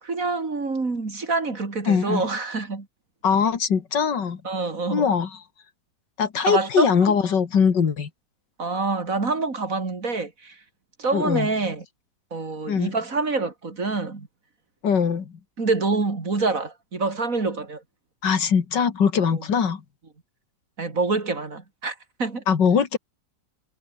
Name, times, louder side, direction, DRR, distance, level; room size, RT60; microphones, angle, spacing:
voice 1, 0.0-2.9 4.4-5.1 6.4-7.2 8.6-10.6 11.0-11.8 12.3-14.3 15.6-17.8 19.3-19.4 20.8-22.4, right 3 dB, 50° right, 3.4 m, -26 dB
voice 2, 1.9-2.2 3.2-4.4 4.9-5.3 6.2-8.1 11.1-11.5 12.7-12.9 14.8-15.3 18.2-19.8 22.5-23.0, left 6 dB, 90° left, 2.6 m, -21 dB
omnidirectional pair, 1.8 m